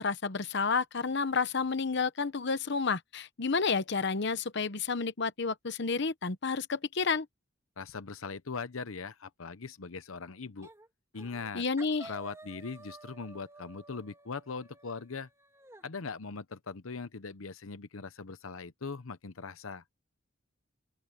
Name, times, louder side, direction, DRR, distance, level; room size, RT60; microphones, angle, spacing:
voice 1, 0.0-7.3 11.5-12.1, left 4 dB, 60° left, 0.9 m, -30 dB
voice 2, 7.8-10.7 11.1-11.6 12.0-15.3 15.8-19.8, left 4 dB, 90° left, 0.9 m, -40 dB
sound 1, 10.6-10.9 11.2-11.5 11.8-15.8, right 2 dB, 15° right, 2.8 m, -52 dB
open air
head